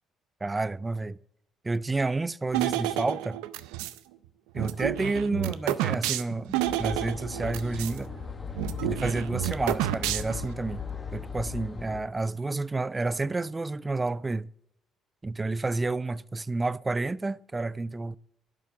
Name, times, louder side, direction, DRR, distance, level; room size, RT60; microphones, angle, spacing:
voice 1, 0.4-1.2 1.6-3.4 4.5-8.1 8.8-10.8 11.1-14.5 15.2-18.2, right 3 dB, 20° right, 0.4 m, -30 dB
sound 1, 2.5-4.0 4.6-8.0 8.2-8.3 8.6-10.5, right 14 dB, 85° right, 0.5 m, -30 dB
sound 2, 6.6-12.0, left 6 dB, 30° left, 1.3 m, -37 dB
11.5 x 6.1 x 4.5 m
supercardioid pair, 70°, 0 cm